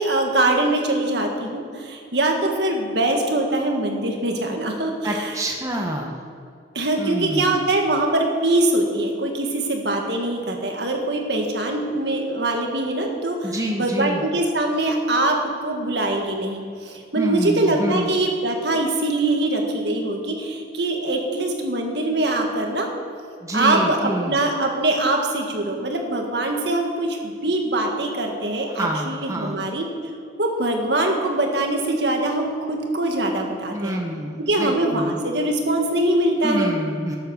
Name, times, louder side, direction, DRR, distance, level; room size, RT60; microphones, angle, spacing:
voice 1, 0.0-5.3 6.7-13.5 13.8-15.4 15.6-22.9 23.5-29.9 30.4-34.0 34.4-36.7, right 2 dB, 60° right, 2 dB, 1.8 m, -23 dB
voice 2, 5.0-6.2 7.0-7.6 13.4-14.2 17.2-18.1 23.4-24.3 28.7-29.6 33.7-35.1 36.4-37.2, right 1 dB, 15° right, 0 dB, 1.1 m, -27 dB
12.0 x 8.4 x 6.4 m, 2.3 s
head